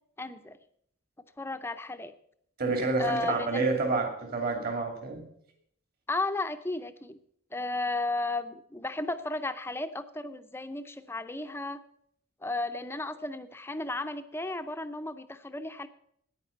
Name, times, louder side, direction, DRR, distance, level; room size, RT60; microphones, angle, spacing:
voice 1, 0.2-0.6 1.4-2.1 3.0-3.7 6.1-7.2 7.5-11.8 12.4-15.9, left 2 dB, 10° left, 10 dB, 0.5 m, -34 dB
voice 2, 2.6-5.3, right 3 dB, 50° right, 3 dB, 2.6 m, -29 dB
9.9 x 9.3 x 7.1 m, 0.67 s
head